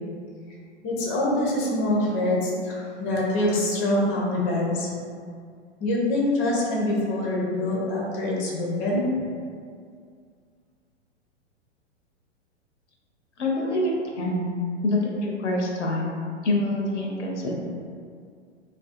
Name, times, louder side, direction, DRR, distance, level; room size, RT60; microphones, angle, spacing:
voice 1, 0.8-4.9 5.8-9.2, left 1 dB, 25° left, -4 dB, 0.5 m, -25 dB
voice 2, 13.4-14.5 14.8-16.1 16.4-17.5, left 1 dB, 75° left, -1 dB, 0.6 m, -26 dB
2.4 x 2.3 x 2.4 m, 2.1 s
figure-of-eight pair, 105°, 35 cm